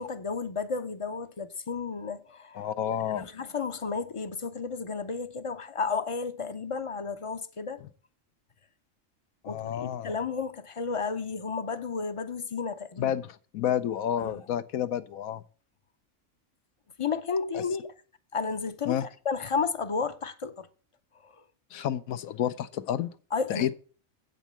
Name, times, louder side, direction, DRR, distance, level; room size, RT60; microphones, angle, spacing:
voice 1, 0.0-2.6 3.1-7.8 9.5-13.1 14.2-14.4 17.0-17.9 18.3-19.0 19.2-20.7 21.2-21.3 23.3-23.7, left 5 dB, 35° left, 0.5 m, -32 dB
voice 2, 2.5-3.3 9.4-10.2 13.0-15.4 17.5-17.6 18.9-19.1 21.7-23.1 23.5-23.7, left 10 dB, 85° left, 1.1 m, -30 dB
8.2 x 5.4 x 7.3 m
omnidirectional pair, 1.4 m